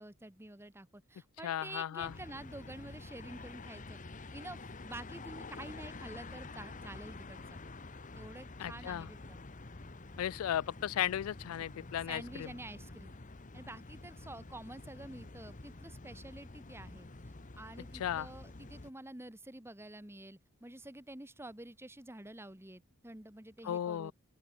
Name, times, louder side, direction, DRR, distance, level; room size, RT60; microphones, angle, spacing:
voice 1, 0.0-4.0 4.3-7.6 8.1-9.4 12.1-13.1 13.5-17.1 17.5-24.1, right 1 dB, 10° right, 1.5 m, -49 dB
voice 2, 1.4-2.1 8.6-9.1 10.2-12.5 18.0-18.3 23.6-24.1, left 10 dB, 80° left, 0.3 m, -35 dB
sound 1, 2.0-18.9, left 2 dB, 35° left, 1.1 m, -48 dB
open air
head